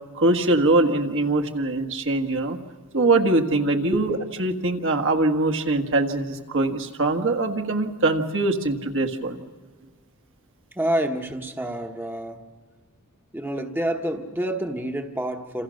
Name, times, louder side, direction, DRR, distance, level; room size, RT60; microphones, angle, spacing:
voice 1, 0.1-2.6 2.9-9.4, right 2 dB, 60° right, 4 dB, 1.7 m, -22 dB
voice 2, 10.7-12.4 13.3-15.6, right 1 dB, 10° right, 4 dB, 1.1 m, -28 dB
28.5 x 27.0 x 6.5 m, 1.5 s
head